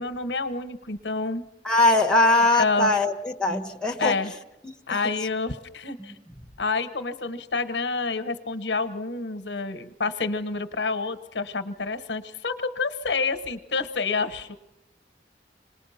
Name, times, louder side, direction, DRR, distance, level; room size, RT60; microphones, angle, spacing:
voice 1, 0.0-1.4 2.6-2.9 4.0-4.3 4.9-6.1 6.6-14.6, left 4 dB, 80° left, 10 dB, 1.0 m, -28 dB
voice 2, 1.6-4.1 4.9-5.1 6.0-6.1, left 2 dB, 5° left, 2 dB, 1.2 m, -21 dB
27.0 x 20.0 x 5.8 m, 0.93 s
head